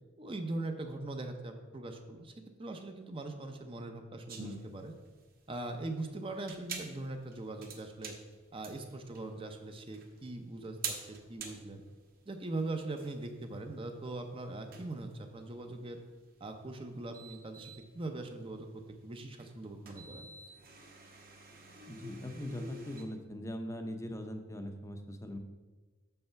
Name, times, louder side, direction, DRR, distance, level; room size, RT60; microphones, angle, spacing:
voice 1, 0.2-2.3 2.6-4.9 5.5-8.2 8.5-11.8 12.3-16.0 16.4-20.3, right 2 dB, 25° right, 5 dB, 0.6 m, -41 dB
sound 1, 4.3-23.0, right 4 dB, 45° right, 1.1 m, -48 dB
voice 2, 21.9-25.4, left 1 dB, 15° left, 6 dB, 0.6 m, -41 dB
6.6 x 5.5 x 5.7 m, 1.3 s
head